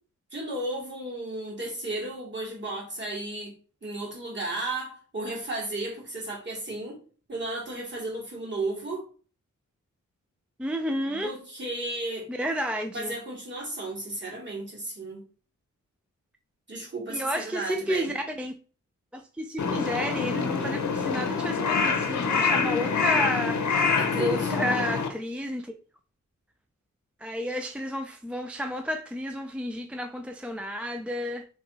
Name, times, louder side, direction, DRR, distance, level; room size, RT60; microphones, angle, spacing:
voice 1, 0.3-3.5 3.8-7.0 7.3-9.0 11.1-12.3 12.9-15.2 16.7-18.1 24.0-24.5, right 2 dB, 35° right, 2.2 m, -34 dB
voice 2, 10.6-11.3 12.3-13.1 17.1-18.5 19.1-25.7 27.2-31.5, equal, 5° right, 0.3 m, -31 dB
Crow, 19.6-25.1, left 5 dB, 60° left, 0.8 m, -26 dB
3.4 x 3.3 x 4.2 m
wide cardioid pair, 95°, 32 cm